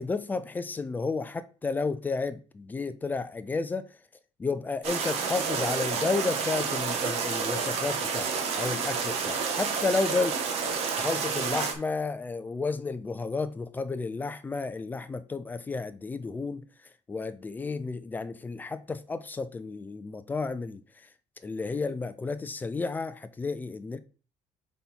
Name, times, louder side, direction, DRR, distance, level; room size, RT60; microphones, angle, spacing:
voice 1, 0.0-3.9 4.4-10.3 11.0-16.6 17.1-20.8 21.4-24.0, left 3 dB, 15° left, 0.4 m, -32 dB
sound 1, 4.8-11.7, right 5 dB, 55° right, 1.5 m, -29 dB
5.9 x 4.3 x 5.4 m
cardioid pair, 165°, 12 cm